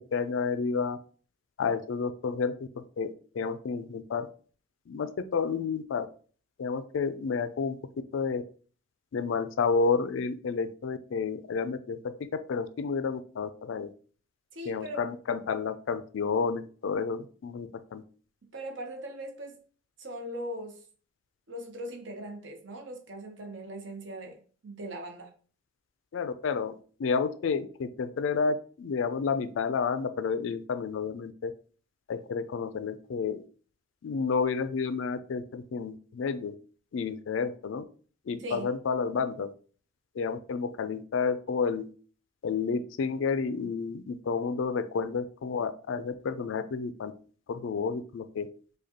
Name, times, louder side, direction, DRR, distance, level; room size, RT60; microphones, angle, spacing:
voice 1, 0.1-1.0 1.6-4.3 4.9-6.1 6.6-7.8 8.1-8.4 9.1-12.0 12.3-13.9 14.7-18.0 26.1-31.5 32.1-33.4 34.0-36.5 36.9-37.8 38.3-39.5 40.2-41.9 42.4-47.1 47.5-48.5, left 5 dB, 75° left, 0.4 m, -30 dB
voice 2, 14.5-15.0 18.5-19.6 20.0-20.8 21.5-24.4 24.6-25.3 38.4-38.7, right 1 dB, 65° right, 0.9 m, -39 dB
4.9 x 2.3 x 2.9 m
head